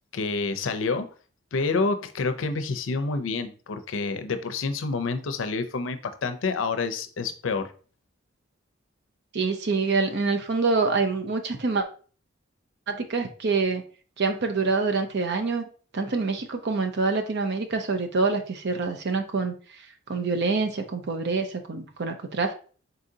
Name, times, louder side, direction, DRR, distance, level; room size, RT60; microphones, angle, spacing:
voice 1, 0.1-1.1 1.5-7.7, left 4 dB, 70° left, 9 dB, 0.5 m, -28 dB
voice 2, 9.3-11.9 12.9-13.8 14.2-15.6 15.9-19.5 20.1-22.5, right 4 dB, 60° right, 5 dB, 0.7 m, -26 dB
4.1 x 3.8 x 2.7 m, 0.39 s
head